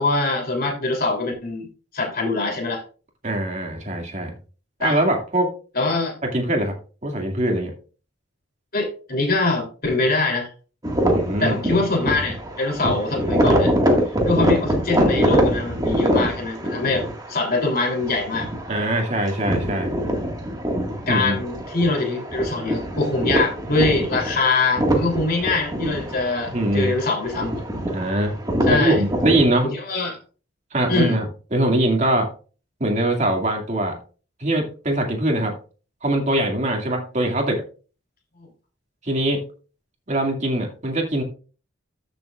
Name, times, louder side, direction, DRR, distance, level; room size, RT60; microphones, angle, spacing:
voice 1, 0.0-1.7 1.9-2.8 4.8-5.0 5.7-6.1 8.7-10.5 11.4-13.7 14.2-18.5 21.1-27.6 28.7-29.0 29.6-30.2 30.9-31.2, left 3 dB, 50° left, 1 dB, 3.1 m, -23 dB
voice 2, 3.2-4.3 4.8-5.5 6.2-6.7 7.0-7.7 11.1-11.6 18.7-19.9 21.1-21.4 26.5-26.9 27.9-28.4 28.7-29.7 30.7-32.3 32.8-34.0 34.4-35.6 36.0-37.6 39.0-39.4 40.1-41.2, right 1 dB, 40° right, 2 dB, 2.2 m, -22 dB
sound 1, 10.8-29.5, equal, 20° right, 1.8 m, -24 dB
14.0 x 6.9 x 2.4 m, 0.36 s
head